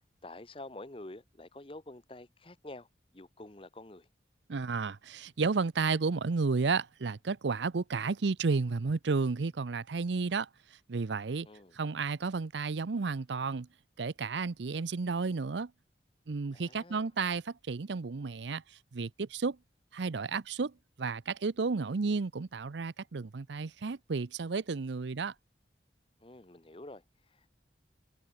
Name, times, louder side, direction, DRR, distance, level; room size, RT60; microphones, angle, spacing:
voice 1, 0.2-2.9 3.1-4.1 11.4-11.7 16.5-17.1 26.2-27.0 27.3-27.5, left 2 dB, 30° left, 1.0 m, -48 dB
voice 2, 4.5-10.5 10.9-11.5 11.7-13.7 14.0-15.7 16.3-18.6 18.9-19.6 19.9-25.3, right 4 dB, 75° right, 0.6 m, -32 dB
head